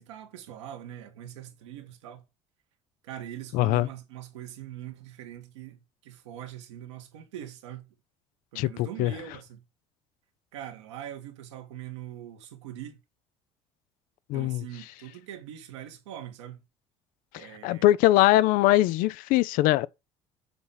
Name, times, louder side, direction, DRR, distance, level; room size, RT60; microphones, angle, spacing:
voice 1, 0.0-2.2 3.0-7.9 8.5-9.6 10.5-13.0 14.3-16.6 17.4-17.9, right 11 dB, 85° right, 1.6 m, -42 dB
voice 2, 3.5-3.9 8.6-9.1 14.3-14.6 17.3-19.9, left 15 dB, 70° left, 0.5 m, -22 dB
7.2 x 4.2 x 5.7 m
hypercardioid pair, 65°, 15 cm